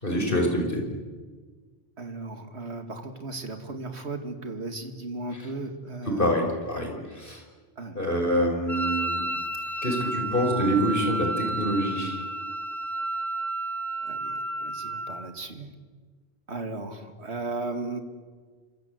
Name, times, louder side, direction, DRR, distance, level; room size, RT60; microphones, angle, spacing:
voice 1, 0.0-0.9 5.3-5.4 6.1-7.4 8.0-9.2 9.8-12.2, equal, 50° left, 2 dB, 5.8 m, -26 dB
voice 2, 2.0-6.3 7.8-8.1 9.7-9.8 14.0-15.7 16.5-18.0, right 2 dB, 75° right, 6 dB, 2.6 m, -36 dB
Wind instrument woodwind instrument, 8.7-15.3, right 2 dB, 15° left, 1.2 m, -31 dB
28.0 x 25.5 x 8.1 m, 1.4 s
omnidirectional pair, 1.1 m